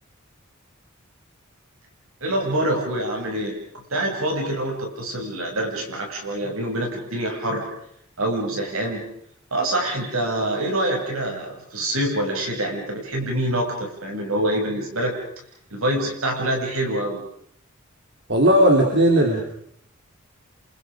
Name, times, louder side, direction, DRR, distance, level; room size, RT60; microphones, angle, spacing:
voice 1, 2.2-3.6 3.9-7.7 8.2-9.0 9.5-15.2 15.7-17.2, right 1 dB, 75° right, 1 dB, 7.6 m, -25 dB
voice 2, 18.3-19.4, right 1 dB, 55° right, 1 dB, 3.7 m, -16 dB
29.5 x 27.5 x 5.2 m, 0.68 s
head